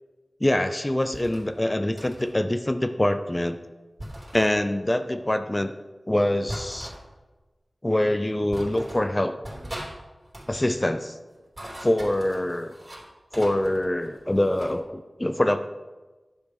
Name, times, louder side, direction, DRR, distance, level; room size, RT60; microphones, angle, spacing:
voice 1, 0.4-3.6 4.3-5.7 6.1-6.9 7.8-9.4 10.5-11.2 11.8-12.7 13.3-15.7, left 1 dB, 20° left, 9 dB, 0.5 m, -24 dB
sound 1, 1.1-1.5 2.0-2.3 4.0-4.5 6.5-7.0 7.9-8.0 8.5-9.1 9.4-9.9 10.2-10.7 11.3-13.0 13.3-14.8, right 1 dB, 40° right, 3.1 m, -39 dB
10.5 x 6.4 x 5.1 m, 1.2 s
wide cardioid pair, 70°, 0 cm